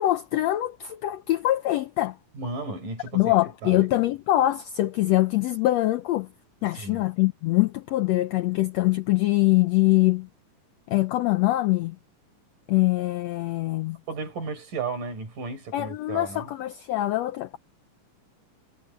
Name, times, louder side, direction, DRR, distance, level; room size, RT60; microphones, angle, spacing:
voice 1, 0.0-2.2 3.1-6.3 6.6-10.3 10.9-12.0 12.7-14.0 15.7-17.6, left 16 dB, 85° left, 1.5 m, -23 dB
voice 2, 2.3-3.4 3.6-3.9 6.7-7.1 14.1-16.5, right 4 dB, 80° right, 6.7 m, -34 dB
omnidirectional pair, 3.7 m